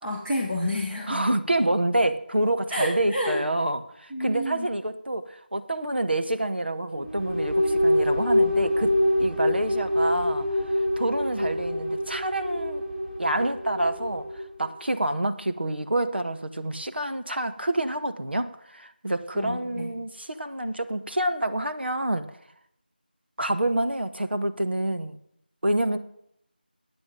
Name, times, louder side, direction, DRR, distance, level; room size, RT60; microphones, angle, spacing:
voice 1, 0.0-1.2 2.7-3.4 4.1-4.7 19.3-19.9, left 1 dB, 5° right, -7 dB, 0.8 m, -29 dB
voice 2, 1.1-8.9 9.2-10.5 11.0-12.8 13.2-22.3 23.4-25.2 25.6-26.0, right 1 dB, 85° right, 8 dB, 1.4 m, -27 dB
sound 1, 6.9-14.5, left 1 dB, 65° right, 4.6 m, -25 dB
8.9 x 8.7 x 9.1 m, 0.75 s
figure-of-eight pair, 175°, 6 cm